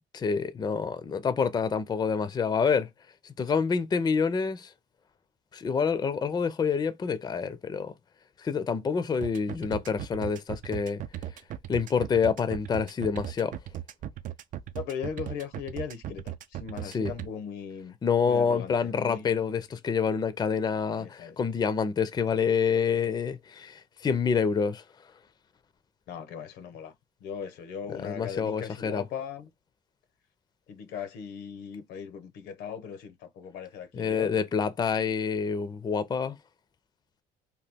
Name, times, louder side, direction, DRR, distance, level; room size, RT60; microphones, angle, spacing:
voice 1, 0.1-2.9 3.4-4.7 5.5-7.9 8.4-11.0 11.7-13.6 16.8-17.1 18.0-24.8 28.0-29.0 33.9-36.4, left 6 dB, 25° left, 0.4 m, -27 dB
sound 1, 9.2-17.3, right 12 dB, 50° right, 0.4 m, -37 dB
voice 2, 14.7-18.0 18.2-19.5 20.9-21.4 26.1-26.9 27.2-29.5 30.7-34.4, left 7 dB, 80° left, 0.7 m, -38 dB
2.9 x 2.3 x 3.4 m
cardioid pair, 110°, 17 cm